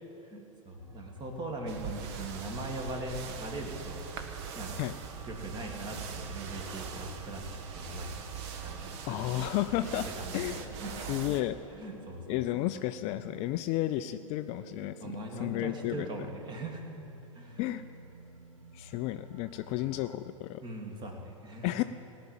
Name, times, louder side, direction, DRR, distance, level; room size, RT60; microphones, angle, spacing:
voice 1, 0.2-4.1 4.5-4.8 5.3-11.1 11.7-12.7 15.0-16.8 17.3-17.8 19.7-19.9 20.6-21.8, right 1 dB, 25° right, 2 dB, 2.2 m, -41 dB
sound 1, 0.8-20.2, right 2 dB, 85° right, 0.9 m, -52 dB
sound 2, 1.7-11.4, right 6 dB, 50° right, 1.2 m, -41 dB
voice 2, 9.0-10.1 10.3-10.6 11.1-11.6 12.3-16.1 17.6-17.8 18.7-20.6 21.6-21.8, left 15 dB, 35° left, 11 dB, 0.4 m, -32 dB
sound 3, 13.1-15.1, right 9 dB, 10° right, 2.9 m, -57 dB
18.0 x 6.0 x 8.9 m, 2.9 s
figure-of-eight pair, 90°, 17 cm